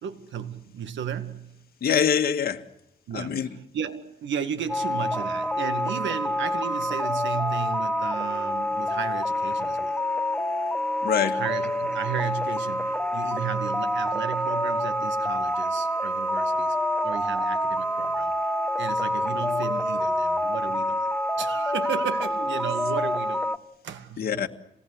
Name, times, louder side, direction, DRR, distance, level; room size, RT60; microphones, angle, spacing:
voice 1, 0.0-1.6 3.1-10.0 11.3-18.3 18.8-21.1 21.4-23.5 23.8-24.5, right 8 dB, 70° right, 2.1 m, -34 dB
voice 2, 1.8-2.6 3.1-3.5 11.0-11.4 24.2-24.5, left 8 dB, 50° left, 1.9 m, -24 dB
sound 1, 4.7-23.6, left 1 dB, 5° left, 1.2 m, -27 dB
28.0 x 19.0 x 8.1 m
cardioid pair, 90°, 20 cm